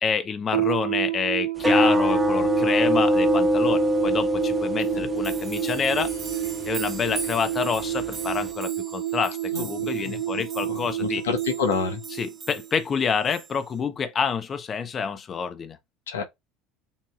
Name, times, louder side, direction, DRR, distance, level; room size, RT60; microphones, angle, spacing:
voice 1, 0.0-6.1 6.6-11.2 12.1-15.8, left 6 dB, 35° left, 0.9 m, -28 dB
sound 1, 0.5-13.0, right 13 dB, 80° right, 1.0 m, -30 dB
sound 2, 1.6-8.5, equal, 15° right, 1.5 m, -24 dB
sound 3, 4.4-4.5 4.8-13.8, right 4 dB, 30° right, 1.7 m, -41 dB
voice 2, 9.5-10.4 10.7-12.0 16.1-16.2, left 6 dB, 85° left, 1.0 m, -29 dB
7.2 x 2.9 x 2.4 m
hypercardioid pair, 75°, 0 cm